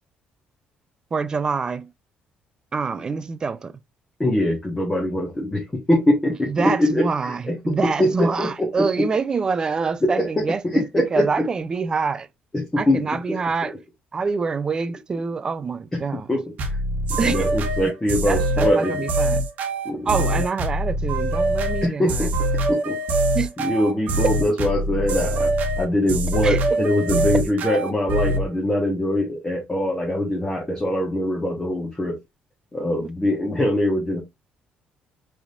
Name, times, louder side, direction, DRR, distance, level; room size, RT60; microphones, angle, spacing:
voice 1, 1.1-1.9 2.7-3.7 6.5-12.3 12.8-13.7 14.1-16.3 17.2-17.5 17.8-17.9 18.2-19.5 20.1-22.3 23.3-23.5 26.4-26.6, right 5 dB, 25° right, 0.4 m, -26 dB
voice 2, 4.2-7.7 8.0-9.0 10.0-11.4 12.5-13.7 15.9-16.8 17.1-19.0 19.8-20.4 21.8-22.3 22.7-23.0 23.6-32.2 32.7-34.2, left 1 dB, 15° left, 1.2 m, -23 dB
sound 1, 16.6-28.5, right 1 dB, 55° right, 1.1 m, -23 dB
4.9 x 3.5 x 2.4 m
cardioid pair, 155°, 3 cm